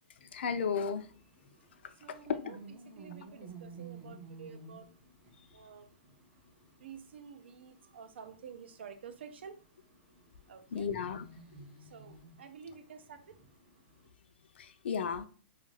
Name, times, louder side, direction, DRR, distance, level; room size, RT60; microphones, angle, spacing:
voice 1, 0.2-1.1 10.7-11.3 14.6-15.3, left 6 dB, 75° left, 10 dB, 0.4 m, -34 dB
sound 1, 0.6-14.1, right 3 dB, 15° right, 0.3 m, -54 dB
voice 2, 2.0-2.6 3.0-4.9 5.5-5.9 6.8-9.6 10.5-10.9 11.8-13.4, right 7 dB, 85° right, 8 dB, 0.5 m, -50 dB
2.3 x 2.2 x 3.1 m, 0.39 s
hypercardioid pair, 180°, 6 cm